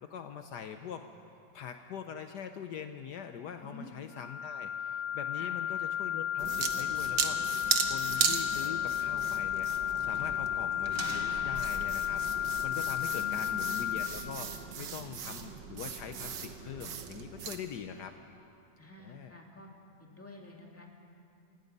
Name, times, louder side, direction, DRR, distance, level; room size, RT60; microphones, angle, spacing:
voice 1, 0.0-1.1 1.5-18.2 19.0-19.4, left 8 dB, 70° left, 7 dB, 1.3 m, -43 dB
sound 1, 4.1-14.1, left 10 dB, 90° left, 0.5 m, -33 dB
sound 2, 6.4-17.6, right 7 dB, 80° right, 1.8 m, -37 dB
voice 2, 13.1-13.8 18.8-19.7 20.0-20.9, left 1 dB, 5° left, 0 dB, 2.2 m, -49 dB
29.0 x 17.5 x 5.4 m, 2.7 s
omnidirectional pair, 1.9 m